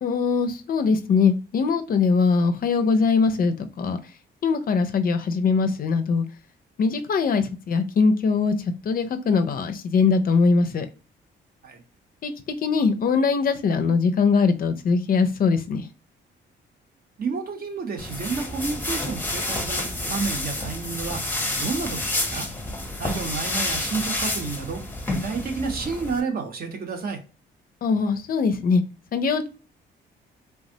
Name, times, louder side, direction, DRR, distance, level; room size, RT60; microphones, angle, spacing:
voice 1, 0.0-4.0 4.4-6.2 6.8-10.9 12.2-12.3 12.6-15.9 27.8-28.8 29.1-29.5, left 5 dB, 45° left, 0.4 m, -21 dB
voice 2, 17.2-21.2 21.6-22.5 23.0-24.8 25.1-27.2, right 4 dB, 50° right, 0.8 m, -30 dB
sound 1, 18.0-26.2, left 1 dB, 10° left, 0.7 m, -29 dB
3.4 x 2.0 x 2.7 m
cardioid pair, 90°, 20 cm